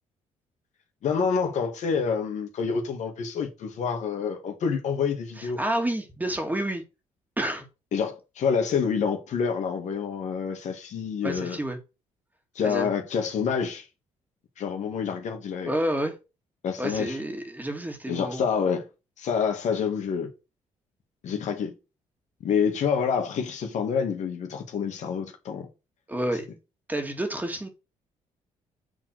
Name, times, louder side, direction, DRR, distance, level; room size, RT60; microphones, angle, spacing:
voice 1, 1.0-5.6 7.9-11.6 12.6-13.9 14.6-15.7 16.6-17.2 18.1-18.9 19.2-20.3 21.2-21.7 22.4-25.7, left 6 dB, 70° left, 1.9 m, -27 dB
voice 2, 5.4-6.8 7.4-7.7 11.2-11.8 12.6-12.9 15.6-16.1 16.8-18.4 26.1-26.5 26.9-27.7, right 1 dB, 15° right, 2.3 m, -29 dB
7.3 x 4.0 x 6.2 m
cardioid pair, 75°, 13 cm